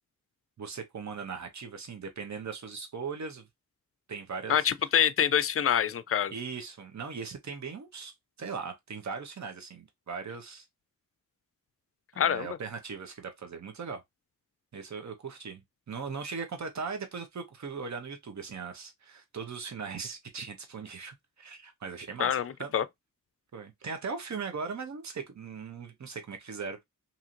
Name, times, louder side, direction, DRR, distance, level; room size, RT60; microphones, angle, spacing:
voice 1, 0.6-3.5 4.1-4.7 6.3-8.1 8.4-10.7 12.1-14.0 14.7-22.7 23.5-26.8, right 5 dB, 55° right, 0.9 m, -39 dB
voice 2, 4.5-6.3 12.2-12.5 22.2-22.8, left 9 dB, 45° left, 0.4 m, -26 dB
2.8 x 2.8 x 2.5 m
cardioid pair, 50°, 34 cm